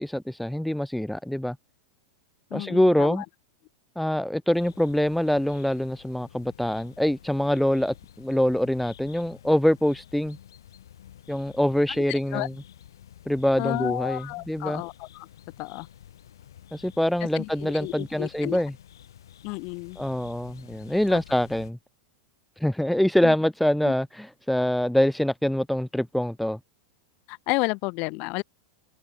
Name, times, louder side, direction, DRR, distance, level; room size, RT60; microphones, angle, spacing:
voice 1, 0.0-1.6 2.5-3.2 4.0-10.4 11.3-12.5 13.3-14.8 16.7-18.7 20.0-21.8 22.6-26.6, left 1 dB, ahead, 2.2 m, -24 dB
voice 2, 2.5-3.2 11.9-12.5 13.6-15.3 15.6-15.9 17.3-18.6 19.4-20.0 21.1-21.2 23.2-23.3 23.8-23.9 27.3-28.4, left 29 dB, 50° left, 7.6 m, -31 dB
sound 1, 4.5-21.7, left 10 dB, 75° left, 5.3 m, -50 dB
hypercardioid pair, 100°, 2 cm